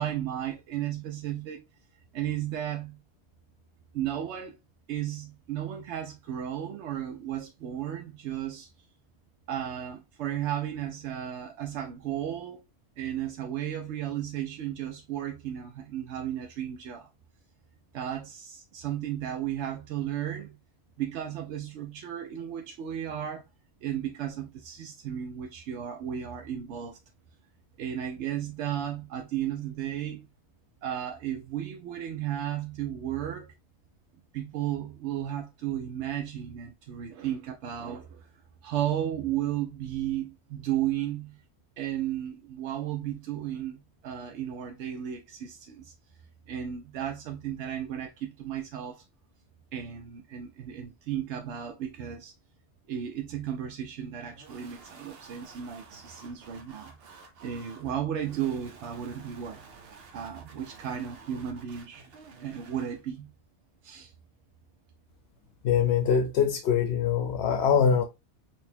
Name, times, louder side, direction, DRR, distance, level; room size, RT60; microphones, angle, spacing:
voice 1, 0.0-1.6 2.1-3.0 3.9-4.6 4.9-8.7 9.5-12.6 13.0-17.1 17.9-20.6 21.0-23.4 23.8-27.0 27.8-30.3 30.8-33.5 34.3-38.3 38.6-41.4 41.8-45.9 46.5-49.0 49.7-52.3 52.9-57.0 57.4-59.6 60.1-62.1 62.4-63.3 63.8-64.1, right 10 dB, 90° right, 0.9 m, -34 dB
sound 1, 54.3-63.0, right 4 dB, 60° right, 1.0 m, -51 dB
voice 2, 65.6-68.0, left 7 dB, 70° left, 0.8 m, -23 dB
3.9 x 2.7 x 2.7 m
omnidirectional pair, 1.1 m